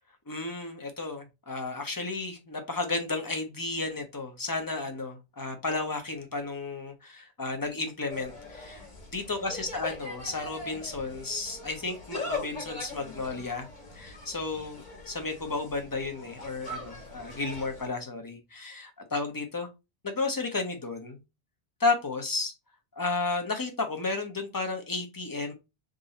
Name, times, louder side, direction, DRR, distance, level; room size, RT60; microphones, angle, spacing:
voice 1, 0.3-8.8 9.1-13.7 13.9-19.7 20.0-21.2 21.8-22.5 23.0-25.5, left 3 dB, 20° left, 0.8 m, -33 dB
Insect, 8.1-17.9, left 2 dB, 45° left, 1.6 m, -41 dB
3.8 x 2.7 x 4.0 m
omnidirectional pair, 1.1 m